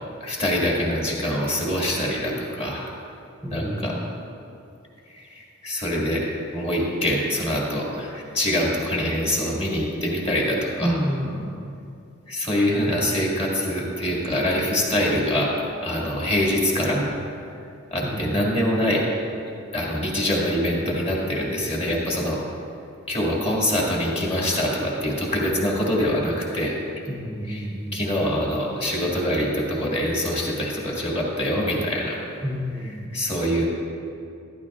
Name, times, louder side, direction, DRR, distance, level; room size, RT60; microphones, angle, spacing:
voice 1, 0.2-2.9 3.5-4.0 5.1-6.3 6.5-11.0 12.3-15.5 15.8-17.1 17.9-19.1 19.7-22.4 23.1-26.7 27.5-27.7 27.9-32.2 32.8-33.7, equal, 30° left, -4 dB, 1.9 m, -24 dB
voice 2, 3.4-4.0 10.8-11.7 18.0-18.3 27.1-28.2 32.4-33.1, equal, 5° right, -2 dB, 0.6 m, -29 dB
13.0 x 12.0 x 2.4 m, 2.5 s
head